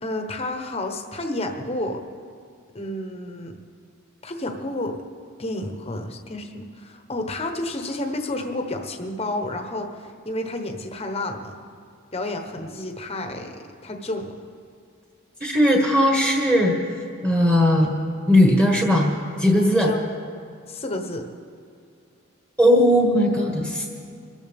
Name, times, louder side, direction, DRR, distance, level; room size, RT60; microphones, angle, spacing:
voice 1, 0.0-2.0 2.7-3.6 4.2-5.0 5.4-11.6 12.1-13.5 13.8-14.3 19.6-20.0 20.7-21.3, left 1 dB, 30° left, 4 dB, 1.1 m, -30 dB
voice 2, 15.4-16.7 17.2-17.9 18.3-19.1 19.4-19.9 22.6-23.9, equal, 15° right, -2 dB, 1.6 m, -18 dB
25.5 x 14.5 x 3.6 m, 2.3 s
head